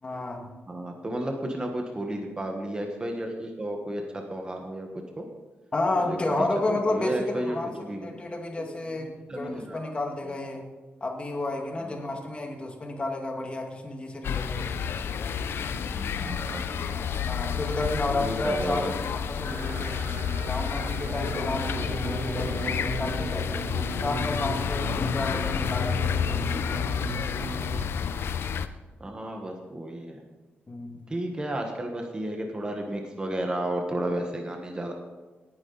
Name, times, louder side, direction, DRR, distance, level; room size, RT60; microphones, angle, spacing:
voice 1, 0.0-0.6 5.7-10.7 11.0-14.7 17.3-20.0 20.4-26.4 30.7-31.0, left 2 dB, 25° left, 2 dB, 2.0 m, -31 dB
voice 2, 0.7-4.9 5.2-5.3 6.0-8.1 8.6-8.7 8.9-9.9 10.2-10.3 11.8-11.9 15.8-17.3 17.8-18.9 24.8-25.6 29.0-30.2 31.1-34.9, right 1 dB, 20° right, 2 dB, 1.4 m, -33 dB
sound 1, 14.2-28.7, left 7 dB, 70° left, 0.7 m, -30 dB
sound 2, 19.5-27.9, right 4 dB, 50° right, 0.8 m, -37 dB
19.0 x 9.5 x 4.0 m, 1.3 s
wide cardioid pair, 140°, 4 cm